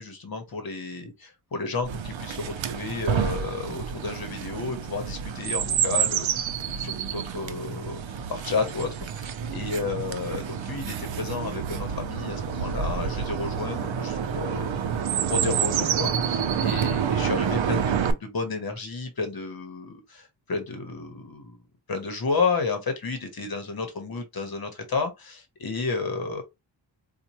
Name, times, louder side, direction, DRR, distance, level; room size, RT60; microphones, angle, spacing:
voice 1, 0.0-8.0 8.3-8.9 9.1-21.6 21.9-26.4, left 4 dB, 50° left, 1.0 m, -32 dB
Chirp tweet, 1.8-18.1, right 8 dB, 85° right, 0.6 m, -28 dB
4.3 x 2.3 x 2.8 m
wide cardioid pair, 150°, 45 cm